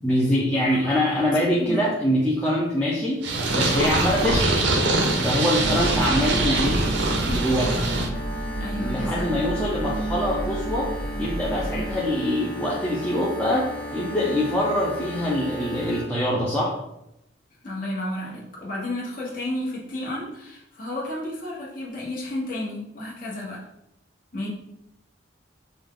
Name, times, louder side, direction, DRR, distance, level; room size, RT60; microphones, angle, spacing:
voice 1, 0.0-3.2 3.5-4.7 5.2-6.9 7.2-7.8 8.8-10.9 11.2-16.8, left 1 dB, 10° left, -7 dB, 0.6 m, -24 dB
voice 2, 0.8-1.3 1.6-1.8 5.6-5.9 8.6-9.3 17.6-23.6 24.3-24.5, left 1 dB, 45° left, -5 dB, 1.3 m, -32 dB
Purr, 3.2-8.1, right 2 dB, 65° right, 0.7 m, -23 dB
sound 1, 5.6-11.9, right 1 dB, 30° right, 0.7 m, -31 dB
sound 2, 8.1-16.0, left 1 dB, 25° left, 1.6 m, -35 dB
5.2 x 2.4 x 3.7 m, 0.82 s
head